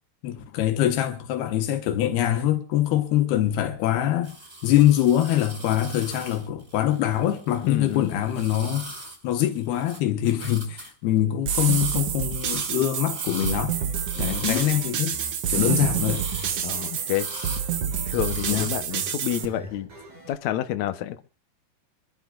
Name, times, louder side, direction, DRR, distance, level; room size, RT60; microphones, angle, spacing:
voice 1, 0.2-4.4 4.6-9.0 9.2-13.7 14.2-15.2 15.5-16.2 18.5-18.7, left 12 dB, 90° left, 3.4 m, -24 dB
sound 1, 4.2-10.0 10.2-10.9 11.6-12.0 12.3-13.6 14.1-14.9 15.9-16.7 17.1-17.7 18.1-18.7, right 1 dB, 15° right, 5.8 m, -40 dB
voice 2, 7.6-8.1 14.2-14.6 15.5-15.8 16.6-17.3 18.1-19.9 20.3-21.2, left 12 dB, 70° left, 1.7 m, -29 dB
sound 2, 11.5-19.5, right 8 dB, 70° right, 1.4 m, -28 dB
sound 3, 13.7-20.3, right 3 dB, 50° right, 8.3 m, -45 dB
26.0 x 12.0 x 2.5 m
omnidirectional pair, 4.4 m